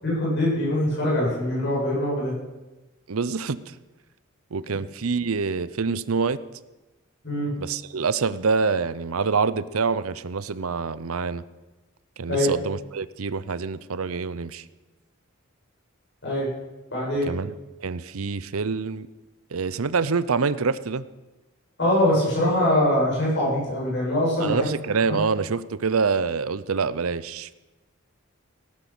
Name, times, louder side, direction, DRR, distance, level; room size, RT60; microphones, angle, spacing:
voice 1, 0.0-2.3 7.2-7.5 12.3-12.5 16.2-16.5 16.9-17.3 21.8-24.7 25.1-25.2, left 1 dB, 55° left, -5 dB, 8.0 m, -23 dB
voice 2, 3.1-3.6 4.5-6.4 7.6-11.4 12.2-14.6 17.3-17.5 17.8-19.1 19.5-21.1 24.4-27.5, right 5 dB, 85° right, 16 dB, 0.7 m, -26 dB
18.0 x 12.0 x 6.2 m, 1.1 s
head